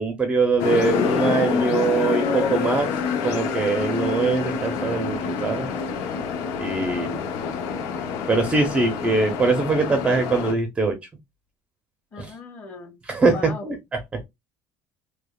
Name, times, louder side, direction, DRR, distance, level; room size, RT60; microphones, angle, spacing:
voice 1, 0.0-2.9 3.2-5.7 6.6-7.2 8.3-11.0 12.2-12.3 13.1-14.2, right 3 dB, 15° right, 0.6 m, -22 dB
sound 1, 0.6-10.5, left 6 dB, 80° left, 0.7 m, -27 dB
voice 2, 6.8-7.3 12.1-13.0 13.3-13.7, left 3 dB, 30° left, 1.6 m, -38 dB
5.0 x 2.1 x 2.3 m
cardioid pair, 165°, 7 cm